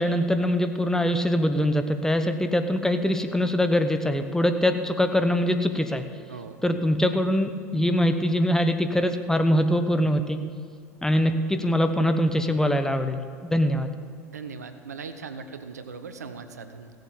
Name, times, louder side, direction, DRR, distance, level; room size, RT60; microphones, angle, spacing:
voice 1, 0.0-6.0 6.6-10.4 11.0-13.9, equal, 5° left, 7 dB, 1.1 m, -23 dB
voice 2, 6.3-6.6 14.3-16.9, right 5 dB, 85° right, 9 dB, 0.8 m, -39 dB
16.5 x 7.9 x 7.1 m, 2.1 s
hypercardioid pair, 80°, 9 cm